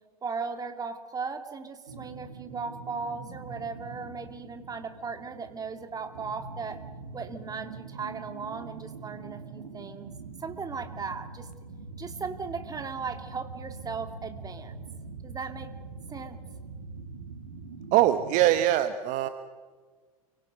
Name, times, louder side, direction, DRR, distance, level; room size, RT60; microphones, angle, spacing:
voice 1, 0.2-6.8 7.1-10.1 10.4-11.5 12.0-14.7 15.2-15.7 16.1-16.4, right 5 dB, 20° right, 7 dB, 2.7 m, -37 dB
sound 1, 1.9-18.6, right 4 dB, 75° right, 2.1 m, -43 dB
voice 2, 17.9-19.3, right 13 dB, 45° right, 10 dB, 1.2 m, -22 dB
29.5 x 24.5 x 5.4 m, 1.5 s
figure-of-eight pair, 85°, 19 cm